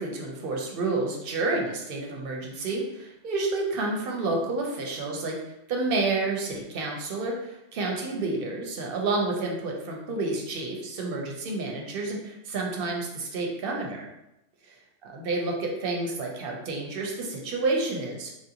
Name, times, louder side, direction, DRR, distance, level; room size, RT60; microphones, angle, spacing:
voice 1, 0.0-5.3 5.7-14.1 14.6-18.3, right 3 dB, 55° right, 0 dB, 0.8 m, -30 dB
3.1 x 2.5 x 2.8 m, 0.89 s
omnidirectional pair, 1.2 m